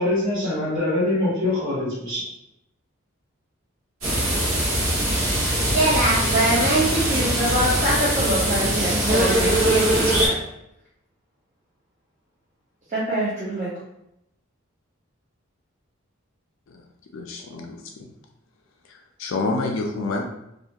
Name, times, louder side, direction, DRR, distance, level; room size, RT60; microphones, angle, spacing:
voice 1, 0.0-2.3, left 1 dB, 65° right, -10 dB, 1.3 m, -23 dB
sound 1, 4.0-10.3, right 1 dB, 90° right, 1.0 m, -22 dB
voice 2, 5.7-10.4 12.9-13.7, right 1 dB, 35° right, -9 dB, 0.6 m, -23 dB
voice 3, 17.1-17.7 18.0-18.1 18.9-20.2, left 3 dB, 70° left, 2 dB, 0.4 m, -28 dB
2.4 x 2.3 x 2.8 m, 0.82 s
head